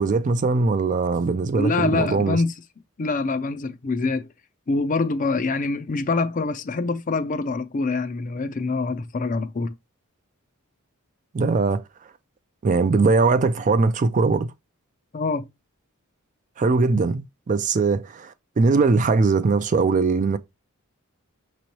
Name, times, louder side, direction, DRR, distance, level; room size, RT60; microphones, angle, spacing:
voice 1, 0.0-2.4 11.3-11.8 12.6-14.5 16.6-20.4, right 4 dB, 35° right, 0.3 m, -21 dB
voice 2, 1.5-2.5 3.0-4.3 4.7-9.7 15.1-15.5, left 3 dB, 35° left, 0.5 m, -25 dB
6.1 x 3.0 x 2.8 m
head